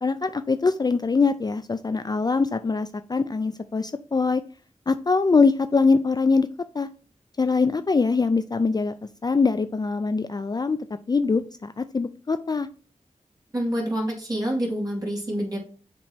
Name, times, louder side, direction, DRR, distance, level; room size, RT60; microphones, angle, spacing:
voice 1, 0.0-4.4 4.9-6.5 6.7-6.9 7.4-9.0 9.2-10.8 11.1-12.7, left 4 dB, 35° left, 11 dB, 0.4 m, -23 dB
voice 2, 13.5-15.6, equal, 30° right, -2 dB, 2.2 m, -27 dB
7.3 x 3.0 x 4.3 m, 0.39 s
wide cardioid pair, 60°, 12 cm